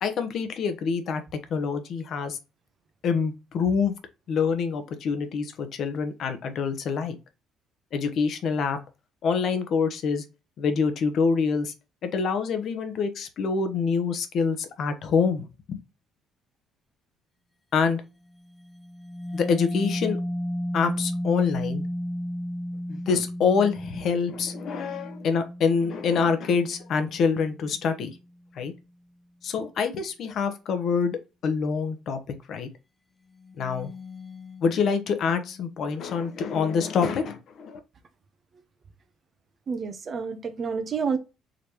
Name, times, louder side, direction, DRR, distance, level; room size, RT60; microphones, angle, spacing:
voice 1, 0.0-1.2 1.5-2.4 3.0-3.9 4.3-7.1 7.9-8.8 9.2-10.2 10.6-11.7 12.0-15.8 17.7-18.0 19.3-20.2 20.7-21.8 22.9-28.2 28.5-28.7 29.4-32.2 32.5-32.7 33.5-33.9 34.6-37.8, left 5 dB, 60° left, 0.9 m, -26 dB
sound 1, 18.5-27.8 33.4-35.9, equal, 10° left, 0.4 m, -34 dB
voice 2, 39.7-41.2, right 5 dB, 45° right, 0.7 m, -29 dB
5.0 x 3.2 x 2.9 m
cardioid pair, 95°, 0 cm